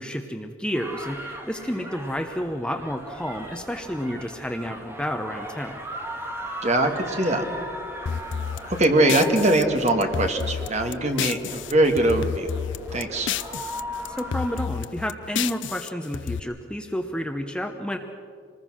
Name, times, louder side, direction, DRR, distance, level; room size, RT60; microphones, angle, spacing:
voice 1, 0.0-5.8 14.1-18.0, equal, 5° left, 5 dB, 0.9 m, -30 dB
sound 1, 0.7-14.7, equal, 15° right, 1.8 m, -38 dB
voice 2, 6.6-7.4 8.6-12.5 12.9-13.3, right 1 dB, 35° right, 5 dB, 1.9 m, -22 dB
sound 2, 8.1-11.7 12.0-13.8 14.1-16.4, left 7 dB, 75° left, 0.5 m, -31 dB
26.0 x 20.0 x 6.3 m, 2.3 s
head